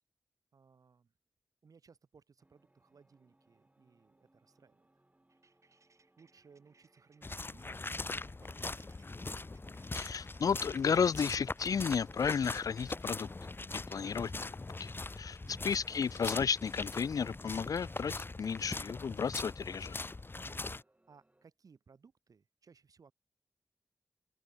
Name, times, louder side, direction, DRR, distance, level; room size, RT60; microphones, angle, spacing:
voice 1, 0.5-1.1 1.6-5.0 6.2-8.9 15.4-15.7 20.4-20.7 21.1-23.1, right 5 dB, 80° right, 5.0 m, -63 dB
sound 1, 2.4-21.5, right 1 dB, 25° right, 6.5 m, -72 dB
sound 2, 5.3-15.9, right 4 dB, 60° right, 3.8 m, -68 dB
sound 3, 7.2-20.8, left 3 dB, 40° left, 1.0 m, -41 dB
voice 2, 9.9-13.3 13.7-14.3 14.8-18.1 18.4-20.0, left 6 dB, 80° left, 0.5 m, -33 dB
open air
cardioid pair, 50°, 6 cm